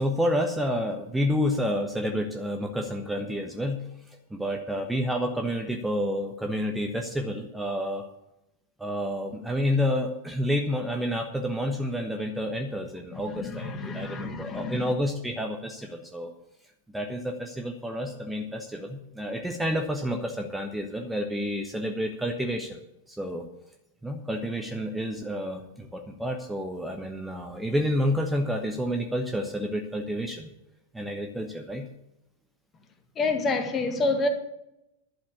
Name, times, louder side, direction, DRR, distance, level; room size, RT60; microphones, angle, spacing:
voice 1, 0.0-8.1 8.8-16.3 16.9-22.8 23.1-23.4 24.0-30.5 30.9-31.9, equal, 5° right, 1.2 m, -29 dB
voice 2, 13.1-14.9 33.2-34.3, left 3 dB, 25° left, 1.9 m, -28 dB
11.5 x 7.3 x 8.3 m
figure-of-eight pair, 90°, 0 cm